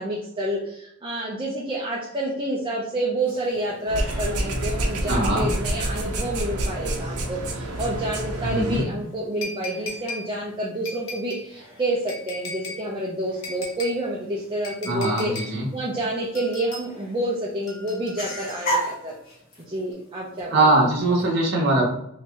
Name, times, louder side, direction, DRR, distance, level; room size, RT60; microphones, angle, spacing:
voice 1, 0.0-19.2 19.7-20.8, right 1 dB, 20° right, -5 dB, 0.5 m, -29 dB
sound 1, 3.2-21.3, equal, 40° left, 1.2 m, -39 dB
sound 2, 3.9-8.8, right 1 dB, 85° right, 0.7 m, -28 dB
voice 2, 5.1-5.5 8.4-8.9 14.9-15.7 20.5-21.9, right 2 dB, 50° right, -4 dB, 0.9 m, -21 dB
sound 3, 9.4-10.3 10.8-11.5 12.1-12.8 13.4-14.0 14.6-15.5 16.3-16.9 17.7-18.9 19.9-20.0, left 2 dB, 60° left, 0.9 m, -37 dB
3.0 x 2.7 x 3.4 m, 0.77 s
head